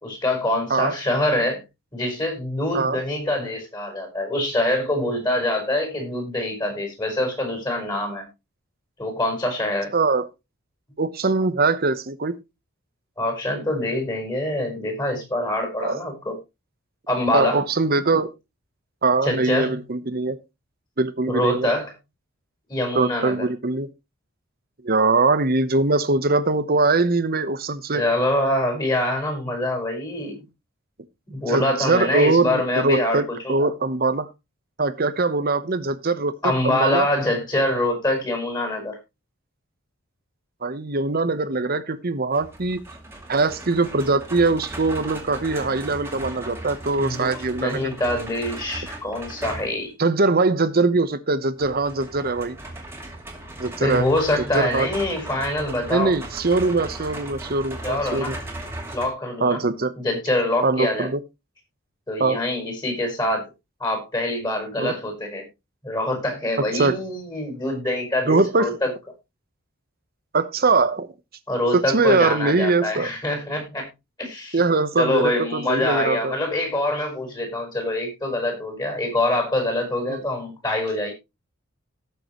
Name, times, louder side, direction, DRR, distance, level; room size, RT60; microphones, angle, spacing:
voice 1, 0.0-1.6 1.9-8.3 9.0-9.9 13.2-16.4 17.1-17.6 19.2-19.8 21.3-21.9 22.7-23.5 27.9-30.4 31.3-33.7 36.4-39.0 47.0-49.9 53.8-56.2 57.8-58.4 58.9-59.6 60.0-61.1 62.1-63.5 63.8-65.4 65.8-68.9 71.5-73.9 74.2-74.6 75.0-81.1, left 1 dB, 20° left, 3 dB, 5.1 m, -25 dB
voice 2, 9.9-10.3 11.0-12.3 15.8-16.0 17.3-18.3 19.0-20.4 21.0-21.7 22.9-23.9 24.8-28.0 31.5-34.3 34.8-37.1 40.6-42.8 43.3-47.8 50.0-52.6 53.6-54.0 54.5-54.9 55.9-58.4 59.4-59.9 60.6-61.2 62.2-62.4 64.8-64.9 66.7-66.9 68.3-68.7 70.3-71.1 71.9-73.1 74.5-76.4 80.1-80.2, right 3 dB, 45° right, 13 dB, 1.0 m, -22 dB
sound 1, 42.3-49.9 51.6-59.1, right 1 dB, 10° right, 2.5 m, -37 dB
18.0 x 6.9 x 3.1 m, 0.24 s
head